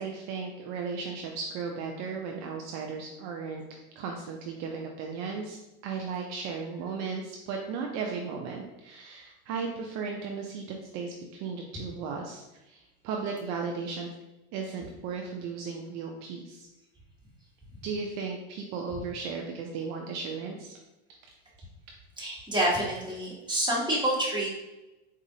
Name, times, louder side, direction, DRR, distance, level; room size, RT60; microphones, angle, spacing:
voice 1, 0.0-3.6 4.0-5.6 5.8-14.1 14.5-16.7 17.8-20.8, right 5 dB, 55° right, 1 dB, 0.6 m, -35 dB
voice 2, 22.2-24.5, right 1 dB, 15° right, -5 dB, 1.4 m, -28 dB
4.0 x 2.5 x 2.7 m, 0.99 s
hypercardioid pair, 90°, 34 cm